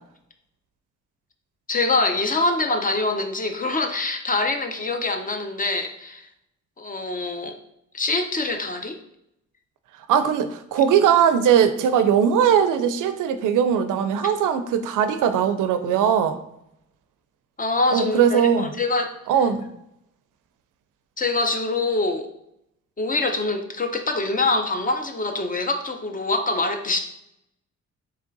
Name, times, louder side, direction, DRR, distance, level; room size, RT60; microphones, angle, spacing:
voice 1, 1.7-6.3 6.8-7.6 7.9-9.0 17.6-19.1 21.2-22.3 23.0-27.0, left 2 dB, 25° left, 6 dB, 0.6 m, -24 dB
voice 2, 10.1-16.4 17.9-18.7 19.3-19.7, right 8 dB, 90° right, 11 dB, 0.5 m, -20 dB
3.5 x 3.2 x 3.9 m, 0.78 s
cardioid pair, 95°, 31 cm